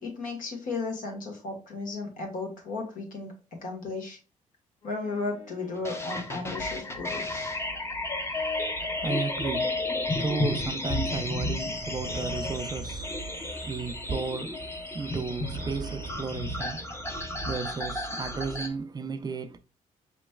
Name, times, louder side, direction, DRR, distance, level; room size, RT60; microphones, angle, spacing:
voice 1, 0.0-3.3 3.6-4.2 4.8-7.5, left 3 dB, 80° left, 1.5 m, -35 dB
sound 1, 4.8-10.5, left 4 dB, 55° left, 1.6 m, -53 dB
sound 2, 5.8-18.7, left 2 dB, 20° left, 0.6 m, -32 dB
sound 3, 6.4-18.8, right 4 dB, 80° right, 0.6 m, -44 dB
voice 2, 8.8-19.6, right 4 dB, 30° right, 0.4 m, -34 dB
5.1 x 3.0 x 2.3 m
cardioid pair, 110°, 14 cm